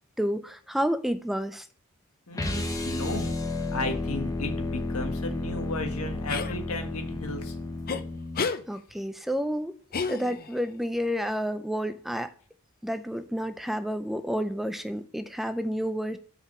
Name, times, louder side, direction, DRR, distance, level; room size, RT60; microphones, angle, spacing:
voice 1, 0.2-1.7 8.7-9.8 10.1-12.3 12.8-16.2, equal, ahead, 0.4 m, -30 dB
voice 2, 2.3-3.4 3.7-7.5, left 2 dB, 85° left, 1.5 m, -34 dB
sound 1, 2.3-8.5, left 2 dB, 15° left, 1.0 m, -32 dB
sound 2, 6.3-6.5 7.9-8.0 8.4-8.6 9.9-10.6, left 5 dB, 45° left, 0.6 m, -30 dB
6.6 x 4.7 x 5.6 m
head